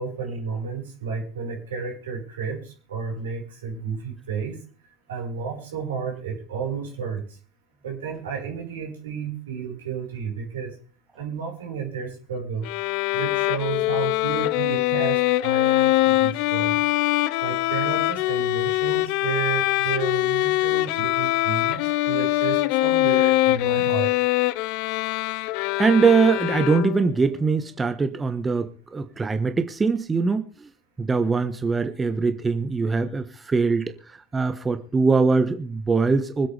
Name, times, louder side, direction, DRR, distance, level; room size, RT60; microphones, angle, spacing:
voice 1, 0.0-4.6 5.1-7.2 7.8-10.7 11.1-12.7 13.1-16.8 17.4-24.1, right 6 dB, 70° right, 1 dB, 4.8 m, -32 dB
Bowed string instrument, 12.6-27.2, left 17 dB, 55° left, 0.5 m, -23 dB
voice 2, 25.8-30.7 31.0-36.5, right 4 dB, 20° right, 9 dB, 1.2 m, -22 dB
25.0 x 8.4 x 3.4 m, 0.39 s
figure-of-eight pair, 70°, 0 cm